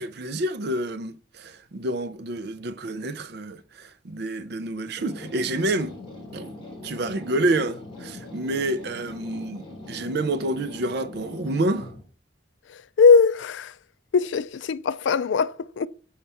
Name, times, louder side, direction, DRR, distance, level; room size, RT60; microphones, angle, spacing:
voice 1, 0.0-5.9 6.3-6.5 6.8-11.9, right 1 dB, 60° right, 0.5 m, -28 dB
sound 1, 5.0-12.0, left 2 dB, 25° left, 3.9 m, -41 dB
voice 2, 13.0-13.7 14.1-15.9, left 5 dB, 75° left, 0.4 m, -20 dB
7.2 x 5.4 x 3.4 m
head